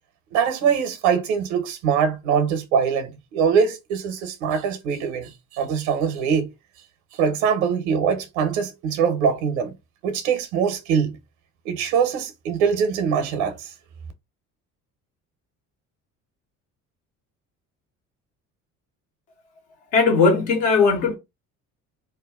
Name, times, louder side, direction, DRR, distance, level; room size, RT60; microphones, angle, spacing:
voice 1, 0.3-6.5 7.2-9.7 10.0-11.2 11.6-13.7, right 7 dB, 80° right, 0.9 m, -23 dB
voice 2, 19.9-21.2, left 4 dB, 85° left, 1.3 m, -18 dB
2.7 x 2.2 x 3.5 m
hypercardioid pair, 65°, 36 cm